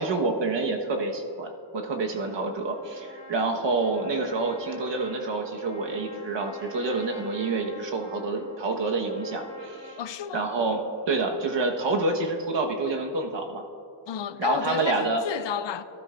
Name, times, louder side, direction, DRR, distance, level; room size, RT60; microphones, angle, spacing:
voice 1, 0.0-10.0 10.3-10.8 11.1-13.6 14.4-15.2, right 3 dB, 80° right, 1.4 m, -28 dB
Trumpet, 2.0-10.1, left 1 dB, 25° right, 2.6 m, -47 dB
voice 2, 10.0-10.5 14.1-15.8, left 9 dB, 75° left, 0.6 m, -31 dB
23.0 x 12.5 x 2.6 m
wide cardioid pair, 180°, 43 cm